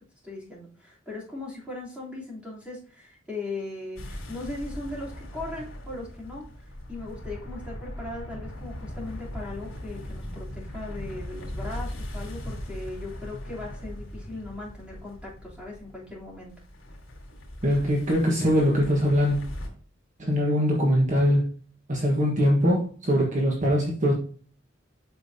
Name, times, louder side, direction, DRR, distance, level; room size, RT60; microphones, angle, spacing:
voice 1, 0.2-16.5, left 2 dB, 5° right, 3.3 m, -38 dB
sound 1, 4.0-19.7, equal, 70° left, 2.9 m, -39 dB
voice 2, 17.6-19.4 20.2-21.5 21.9-24.1, equal, 40° right, 1.4 m, -22 dB
8.2 x 6.1 x 2.8 m
head